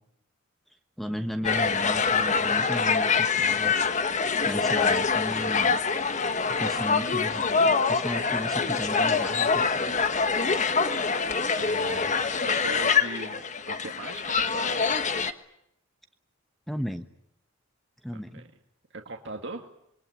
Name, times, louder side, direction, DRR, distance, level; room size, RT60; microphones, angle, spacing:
voice 1, 1.0-3.7 4.4-5.8 6.4-9.9 16.7-17.1 18.0-18.4, equal, ahead, 7 dB, 1.1 m, -35 dB
sound 1, 1.4-15.3, left 5 dB, 35° left, 1.4 m, -25 dB
voice 2, 11.5-12.1 12.4-14.9 18.1-18.5 18.9-19.7, right 2 dB, 60° right, 4 dB, 2.1 m, -39 dB
26.5 x 22.5 x 9.8 m, 0.78 s
head